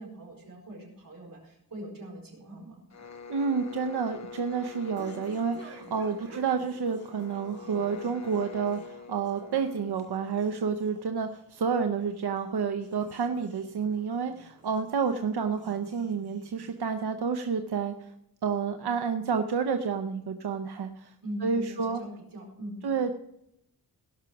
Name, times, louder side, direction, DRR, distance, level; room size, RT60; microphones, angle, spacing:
voice 1, 0.0-2.8 21.2-22.8, right 1 dB, 60° right, -1 dB, 4.5 m, -41 dB
sound 1, 2.9-10.7, left 4 dB, 45° left, 1.1 m, -45 dB
voice 2, 3.3-18.1 18.4-21.1 21.4-22.0 22.8-23.1, right 6 dB, 90° right, 6 dB, 0.7 m, -30 dB
sound 2, 3.6-17.2, right 2 dB, 40° right, 2.0 m, -53 dB
17.5 x 6.0 x 5.8 m, 0.80 s
wide cardioid pair, 85°, 38 cm